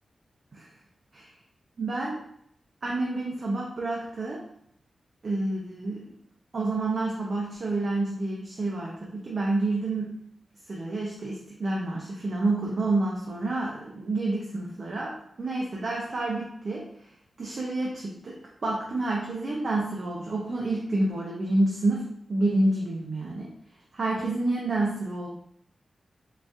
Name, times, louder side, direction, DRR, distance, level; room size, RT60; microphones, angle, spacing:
voice 1, 1.8-2.2 2.8-4.4 5.2-6.1 6.5-10.1 10.7-15.1 15.4-16.8 17.4-18.3 18.6-22.0 22.3-23.5 23.9-25.3, right 2 dB, 55° right, -3 dB, 0.5 m, -28 dB
3.9 x 2.3 x 2.6 m, 0.70 s
wide cardioid pair, 100°, 0 cm